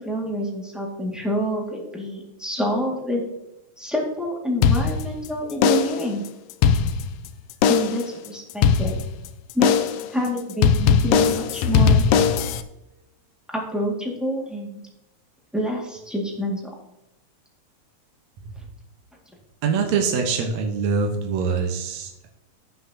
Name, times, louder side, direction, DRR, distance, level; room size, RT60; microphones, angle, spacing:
voice 1, 0.0-3.2 3.8-6.2 7.7-9.0 9.5-12.0 13.5-14.8 15.5-16.6, equal, ahead, -2 dB, 1.4 m, -27 dB
sound 1, 4.6-5.3 5.6-6.1 6.5-7.3 7.6-8.1 8.6-9.3 9.6-10.1 10.6-12.6, left 6 dB, 80° left, 1.5 m, -19 dB
voice 2, 19.6-22.3, right 5 dB, 70° right, 1 dB, 2.4 m, -24 dB
15.5 x 6.1 x 2.9 m, 0.92 s
omnidirectional pair, 3.4 m